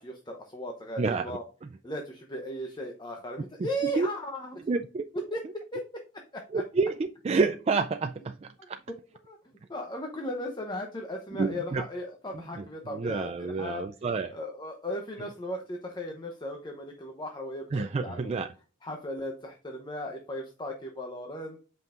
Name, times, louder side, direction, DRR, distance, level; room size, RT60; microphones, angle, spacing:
voice 1, 0.0-1.4 1.8-4.5 5.3-6.0 6.3-6.6 9.2-9.4 9.7-13.8 14.3-18.4 18.8-21.6, equal, 25° left, 0.8 m, -37 dB
voice 2, 1.0-1.4 3.8-4.1 4.7-5.0 6.5-7.0 7.2-8.8 11.3-11.8 12.3-14.4 15.2-15.3 17.7-18.5, right 4 dB, 35° right, 0.3 m, -29 dB
8.1 x 5.3 x 2.5 m
head